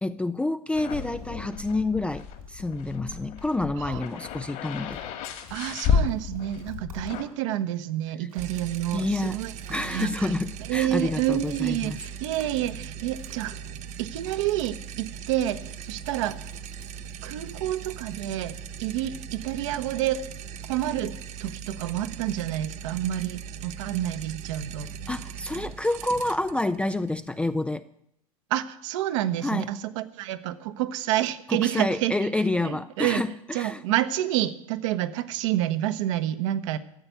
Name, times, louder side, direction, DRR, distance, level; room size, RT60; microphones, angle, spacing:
voice 1, 0.0-5.0 8.9-9.4 9.7-12.0 25.1-27.8 29.4-29.7 31.5-33.8, left 2 dB, 5° left, 10 dB, 0.4 m, -28 dB
sound 1, 0.7-7.2, left 6 dB, 50° left, 2.0 m, -31 dB
sound 2, 0.9-3.4 4.4-4.5 4.7-7.6 8.0-10.1 11.3-13.6 15.6-16.9, right 4 dB, 80° right, 4.3 m, -57 dB
voice 2, 5.5-10.3 10.7-13.6 14.0-16.4 17.2-20.3 20.7-21.1 21.4-24.9 28.5-32.1 32.6-33.2 33.5-36.8, right 13 dB, 55° right, 10 dB, 1.0 m, -29 dB
sound 3, 8.4-27.7, right 7 dB, 40° right, 0.8 m, -40 dB
14.0 x 7.9 x 8.2 m, 0.76 s
figure-of-eight pair, 85°, 19 cm